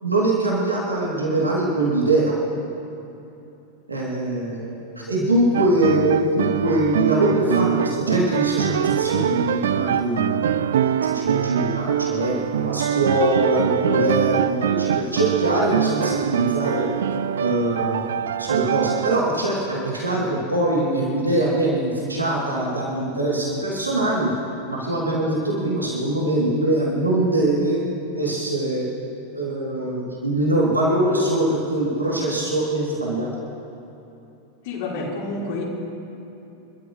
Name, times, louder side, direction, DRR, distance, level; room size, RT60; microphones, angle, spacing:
voice 1, 0.0-2.4 3.9-10.6 11.1-16.9 17.4-18.1 18.4-24.3 24.7-27.8 28.2-28.9 29.3-33.3, right 1 dB, 80° right, -5 dB, 3.0 m, -22 dB
sound 1, 5.5-19.2, right 9 dB, 60° right, 0.4 m, -23 dB
voice 2, 34.6-35.6, left 3 dB, 50° left, -5 dB, 4.3 m, -29 dB
28.0 x 13.0 x 3.2 m, 2.9 s
figure-of-eight pair, 90°, 0 cm